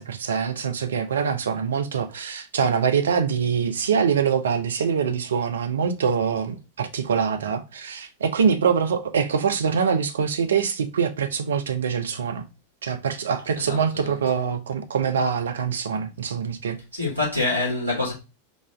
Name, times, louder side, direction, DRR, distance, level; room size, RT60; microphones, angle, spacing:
voice 1, 0.0-12.4 12.8-16.8, right 6 dB, 65° right, 0.5 m, -24 dB
voice 2, 13.6-14.1 16.9-18.1, left 2 dB, 85° right, 1.7 m, -26 dB
4.2 x 2.5 x 3.3 m
figure-of-eight pair, 90°, 0 cm